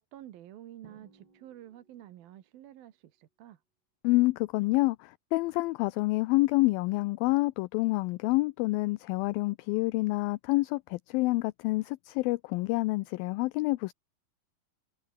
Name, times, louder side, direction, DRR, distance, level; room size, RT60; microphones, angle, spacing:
voice 1, 0.0-3.6, right 12 dB, 75° right, 3.2 m, -50 dB
Drum, 0.8-2.5, right 4 dB, 30° right, 4.1 m, -61 dB
voice 2, 4.0-13.9, left 21 dB, 80° left, 2.3 m, -28 dB
omnidirectional pair, 4.4 m